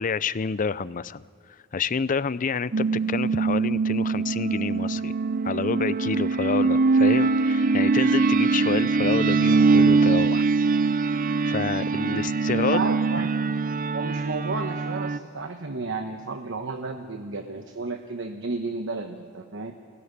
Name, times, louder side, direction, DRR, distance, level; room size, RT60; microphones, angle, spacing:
voice 1, 0.0-5.1 5.4-10.5 11.0-12.9, left 5 dB, 40° left, 17 dB, 0.5 m, -29 dB
sound 1, 2.7-15.2, right 4 dB, 40° right, 0.5 m, -22 dB
voice 2, 12.7-13.3 13.9-19.7, right 3 dB, 65° right, 5 dB, 1.1 m, -32 dB
22.5 x 17.0 x 9.5 m, 2.2 s
head